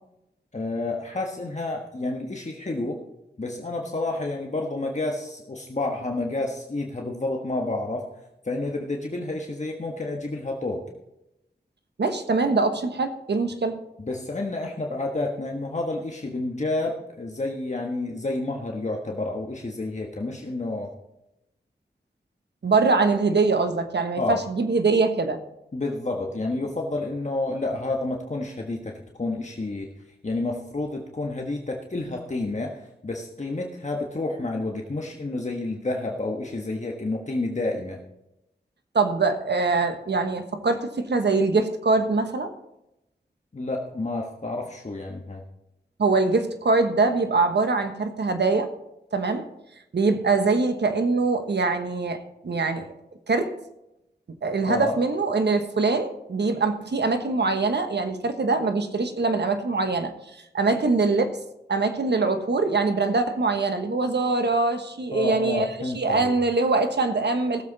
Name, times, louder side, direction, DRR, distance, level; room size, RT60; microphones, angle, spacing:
voice 1, 0.5-3.0 3.4-8.1 8.4-10.9 14.0-20.9 24.2-24.4 25.7-29.9 30.2-38.0 43.5-45.4 54.7-55.0 65.1-66.3, left 2 dB, 40° left, 0 dB, 1.4 m, -29 dB
voice 2, 12.0-13.8 22.6-25.4 38.9-42.5 46.0-48.7 49.1-49.5 49.9-52.9 53.3-53.5 54.4-60.1 60.5-61.4 61.7-65.7 65.9-67.6, right 3 dB, 80° right, 7 dB, 1.3 m, -23 dB
17.5 x 7.7 x 4.1 m, 0.88 s
wide cardioid pair, 60°, 18 cm